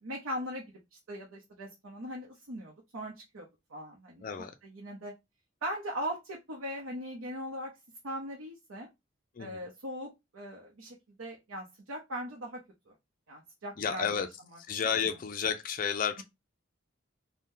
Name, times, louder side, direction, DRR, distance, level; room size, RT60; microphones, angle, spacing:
voice 1, 0.0-4.2 4.6-5.1 5.6-7.7 8.0-8.9 9.4-12.9 13.3-14.3, equal, 85° right, 0.7 m, -40 dB
voice 2, 4.2-4.5 9.4-9.7 13.8-14.3 14.6-16.2, left 7 dB, 40° left, 0.3 m, -31 dB
2.7 x 2.1 x 3.6 m
head